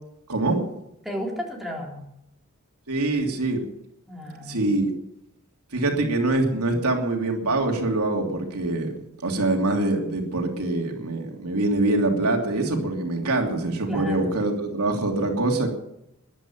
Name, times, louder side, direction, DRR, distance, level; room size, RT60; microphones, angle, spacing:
voice 1, 0.3-0.6 2.9-3.6 4.5-4.9 5.7-8.9 9.2-15.7, right 2 dB, 90° right, 2 dB, 3.0 m, -24 dB
voice 2, 1.0-2.1 4.1-4.7 13.9-14.3, equal, ahead, -2 dB, 3.5 m, -33 dB
14.5 x 11.0 x 7.3 m, 0.81 s
head